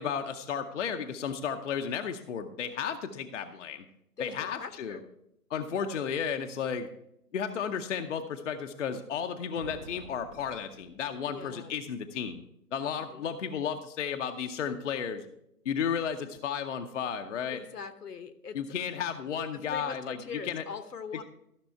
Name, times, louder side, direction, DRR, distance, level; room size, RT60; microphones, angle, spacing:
voice 1, 0.0-3.8 4.2-5.0 5.5-6.9 7.3-12.4 12.7-15.2 15.6-17.6 18.5-20.6, left 7 dB, 50° left, 6 dB, 0.7 m, -33 dB
voice 2, 4.2-5.0 5.9-6.0 11.3-11.8 12.9-13.2 17.5-18.6 19.7-21.2, left 5 dB, 75° left, 10 dB, 1.1 m, -42 dB
sound 1, 9.5-11.8, right 1 dB, 20° right, 1.0 m, -50 dB
13.5 x 6.1 x 4.5 m, 0.79 s
figure-of-eight pair, 140°, 47 cm